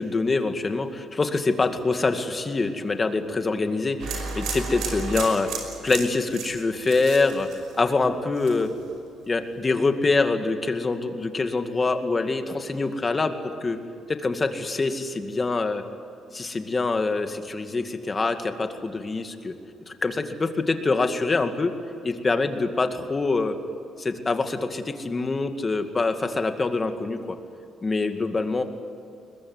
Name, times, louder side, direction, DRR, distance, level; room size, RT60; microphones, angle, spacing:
voice 1, 0.0-5.5 5.8-8.7 9.3-13.3 13.6-13.8 14.1-15.8 16.3-19.5 19.9-21.7 22.0-23.6 24.0-27.4 27.8-28.6, left 3 dB, 30° left, 7 dB, 2.2 m, -25 dB
sound 1, 4.0-8.0 8.4-8.8, right 4 dB, 80° right, 5.4 m, -33 dB
22.0 x 21.5 x 9.7 m, 2.6 s
cardioid pair, 90°, 0 cm